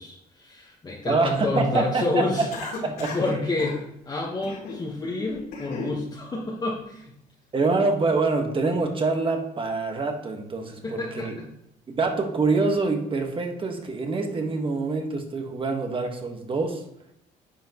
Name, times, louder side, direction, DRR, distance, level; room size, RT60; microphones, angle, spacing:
voice 1, 0.0-2.5 3.1-7.1 10.8-11.3, left 2 dB, 25° left, -4 dB, 1.4 m, -29 dB
voice 2, 1.0-2.5 2.8-3.2 7.5-11.4 11.9-16.8, right 3 dB, 30° right, 4 dB, 1.4 m, -25 dB
Cough, 2.5-3.3 3.6-3.8 4.4-4.8 5.3-6.0, left 3 dB, 65° left, 2.8 m, -35 dB
10.0 x 5.8 x 3.0 m, 0.77 s
cardioid pair, 110°, 17 cm